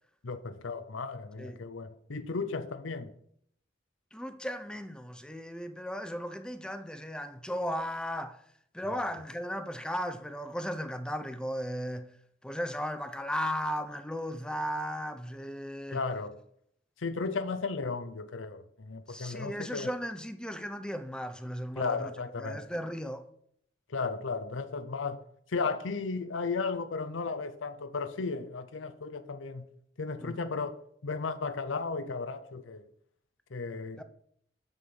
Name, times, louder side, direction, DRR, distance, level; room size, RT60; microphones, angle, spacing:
voice 1, 0.2-3.1 8.9-9.1 15.9-16.4 17.0-19.9 21.8-22.7 23.9-25.2 25.5-29.6 30.0-32.8 33.5-34.0, left 4 dB, 90° left, 0.7 m, -35 dB
voice 2, 4.1-8.4 8.7-12.1 12.4-16.0 19.1-22.1 22.4-23.2 30.2-30.4 34.0-34.1, equal, 5° left, 0.6 m, -36 dB
7.2 x 6.8 x 5.5 m
head